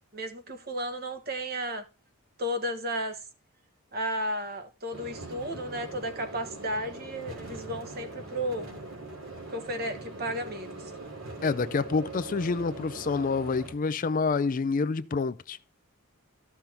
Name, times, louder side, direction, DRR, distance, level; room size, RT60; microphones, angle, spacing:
voice 1, 0.1-1.8 2.4-3.2 3.9-8.7 9.5-10.9, equal, 45° right, 1.3 m, -33 dB
sound 1, 4.9-13.7, right 2 dB, 70° right, 2.8 m, -42 dB
voice 2, 11.4-15.6, left 4 dB, 40° left, 0.4 m, -28 dB
13.5 x 5.9 x 3.4 m
head